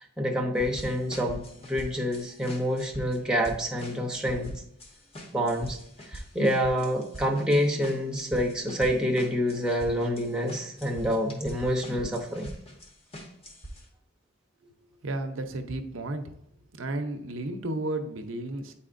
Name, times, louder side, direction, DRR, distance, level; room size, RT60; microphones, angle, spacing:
voice 1, 0.2-4.5 5.3-5.8 6.1-12.5, equal, 5° right, 0 dB, 0.7 m, -27 dB
sound 1, 0.6-13.9, equal, 30° left, 0.9 m, -43 dB
voice 2, 15.0-16.2 16.7-18.7, right 2 dB, 75° right, 6 dB, 0.7 m, -33 dB
9.0 x 4.1 x 2.5 m, 0.74 s
head